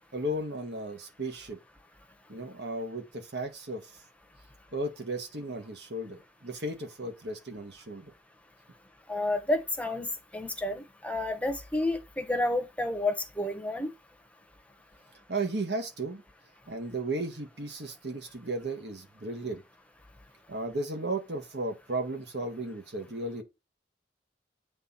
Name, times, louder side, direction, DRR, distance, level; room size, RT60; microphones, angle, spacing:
voice 1, 0.1-1.6 2.3-3.9 4.7-8.1 15.3-16.2 16.7-19.6 20.5-23.4, right 2 dB, 65° right, 1.5 m, -35 dB
voice 2, 9.1-10.1 10.3-13.9, left 2 dB, 10° left, 0.9 m, -30 dB
8.0 x 3.9 x 4.2 m
head